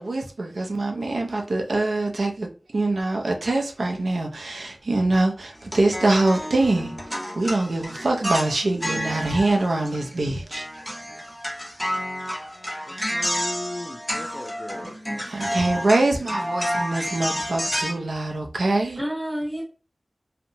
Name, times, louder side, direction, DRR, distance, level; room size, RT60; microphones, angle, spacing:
voice 1, 0.0-2.5 2.7-7.0 7.4-10.7 15.3-19.0, right 2 dB, 85° right, 0.5 m, -24 dB
sound 1, 5.6-10.2 10.5-17.9, equal, 10° left, 0.8 m, -30 dB
voice 2, 12.9-15.0, left 2 dB, 45° left, 0.4 m, -37 dB
voice 3, 14.8-15.2 19.0-19.6, equal, 35° right, 1.2 m, -31 dB
2.8 x 2.1 x 2.6 m
wide cardioid pair, 50°, 0 cm